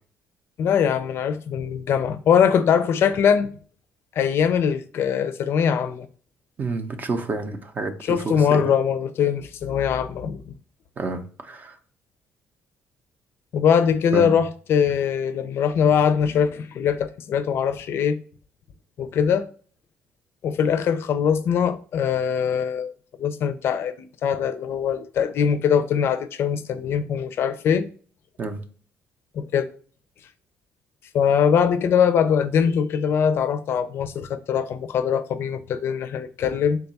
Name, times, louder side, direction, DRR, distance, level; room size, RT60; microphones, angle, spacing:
voice 1, 0.6-3.5 4.1-6.1 8.0-10.5 13.5-18.2 19.0-19.5 20.4-22.9 23.2-27.9 29.3-29.7 31.1-36.8, left 7 dB, 55° left, 0.4 m, -22 dB
voice 2, 6.6-8.7 11.0-11.8 14.1-14.4 28.4-28.6, right 3 dB, 35° right, 0.5 m, -29 dB
3.6 x 2.3 x 3.9 m
cardioid pair, 125°, 5 cm